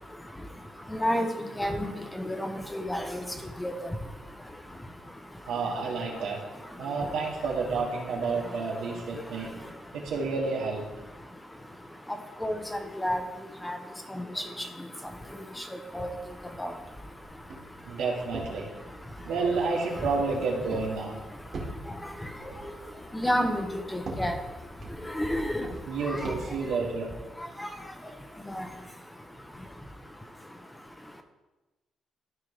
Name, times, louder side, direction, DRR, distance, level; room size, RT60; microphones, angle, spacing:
voice 1, 0.9-1.3 1.6-1.9 2.2-3.2 3.6-3.7 12.4-12.6 13.0-13.2 13.6-13.8 15.9-16.1 16.6-16.7 23.1-24.3 25.2-25.6 27.6-27.7 28.5-28.7, equal, 10° left, 6 dB, 0.9 m, -29 dB
voice 2, 5.5-6.4 6.8-9.5 9.9-10.9 17.9-18.7 19.2-21.2 25.9-27.1, right 4 dB, 85° right, -1 dB, 1.8 m, -30 dB
Walk footsteps, 17.2-26.6, right 2 dB, 55° right, 2.2 m, -44 dB
13.5 x 4.7 x 3.3 m, 1.1 s
cardioid pair, 90°, 0 cm